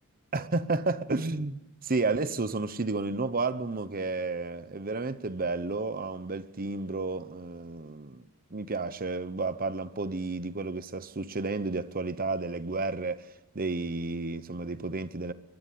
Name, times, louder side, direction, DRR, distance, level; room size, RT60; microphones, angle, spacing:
voice 1, 0.3-8.2 8.5-13.3 13.5-15.3, right 3 dB, 40° right, 1.0 m, -31 dB
24.0 x 22.5 x 8.5 m
head